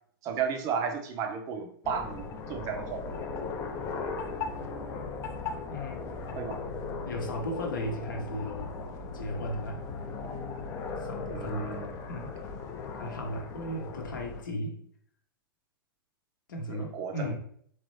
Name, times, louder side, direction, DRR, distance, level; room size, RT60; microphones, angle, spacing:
voice 1, 0.2-3.1 6.4-6.6 11.3-11.9 16.7-17.3, right 6 dB, 30° right, 4 dB, 0.5 m, -34 dB
sound 1, 1.8-14.4, left 4 dB, 20° left, 0.4 m, -37 dB
voice 2, 5.4-6.4 7.0-8.8 9.1-9.8 11.1-12.3 12.9-14.8 16.5-17.4, equal, 60° left, 1 dB, 0.8 m, -36 dB
3.9 x 3.0 x 3.1 m, 0.63 s
figure-of-eight pair, 105°, 12 cm